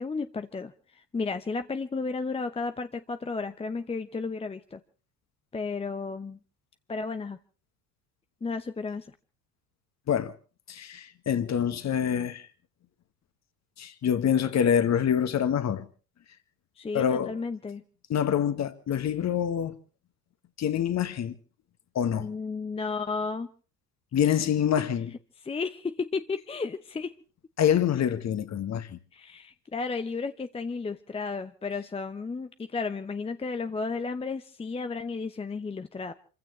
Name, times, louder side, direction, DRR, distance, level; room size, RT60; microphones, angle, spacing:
voice 1, 0.0-4.8 5.5-6.4 6.9-7.4 8.4-9.1 16.8-17.8 22.2-23.5 24.2-24.3 25.4-27.1 29.1-36.1, left 4 dB, 10° left, 0.8 m, -33 dB
voice 2, 10.7-12.5 13.8-15.9 16.9-17.3 18.1-19.8 20.6-21.3 21.9-22.3 24.1-25.1 27.6-29.0, left 9 dB, 35° left, 1.7 m, -26 dB
28.5 x 15.5 x 3.2 m
figure-of-eight pair, 65°, 48 cm